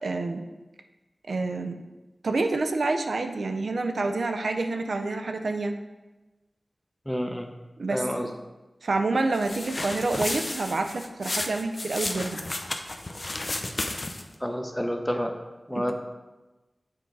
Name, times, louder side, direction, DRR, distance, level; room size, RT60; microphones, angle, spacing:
voice 1, 0.0-0.5 1.3-1.8 2.2-5.7 7.8-8.3 8.8-12.4 15.7-15.9, right 3 dB, 85° right, 5 dB, 0.5 m, -28 dB
voice 2, 7.1-7.5 7.9-8.3 14.4-15.3 15.7-15.9, equal, 5° left, 4 dB, 0.7 m, -29 dB
sound 1, 9.3-14.4, left 2 dB, 45° left, 0.5 m, -33 dB
7.1 x 3.9 x 4.6 m, 1.1 s
wide cardioid pair, 75°, 0 cm